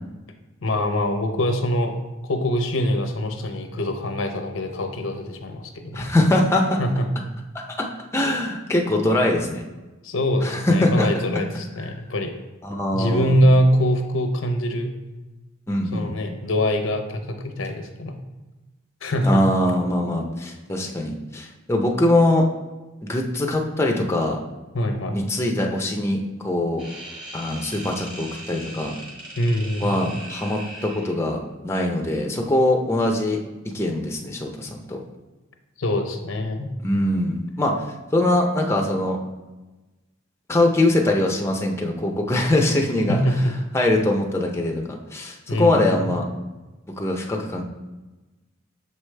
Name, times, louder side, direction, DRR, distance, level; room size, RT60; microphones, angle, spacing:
voice 1, 0.6-1.9 2.2-6.1 6.8-7.0 10.0-12.3 12.9-14.9 15.9-18.1 19.0-19.4 24.7-25.2 29.4-30.0 35.8-36.7 43.1-43.5 45.5-46.2, equal, 75° left, 6 dB, 0.7 m, -23 dB
voice 2, 5.9-6.8 7.8-7.9 8.1-9.6 10.4-11.1 12.6-13.4 15.7-16.1 19.2-22.4 23.1-24.4 25.1-26.8 27.3-29.0 29.8-33.4 33.6-35.0 36.8-37.8 38.1-39.2 40.5-43.2 43.7-46.2 47.0-47.6, left 1 dB, 15° left, 1 dB, 0.6 m, -22 dB
sound 1, 26.8-31.2, right 1 dB, 25° right, 1.5 m, -39 dB
6.8 x 4.8 x 3.3 m, 1.1 s
head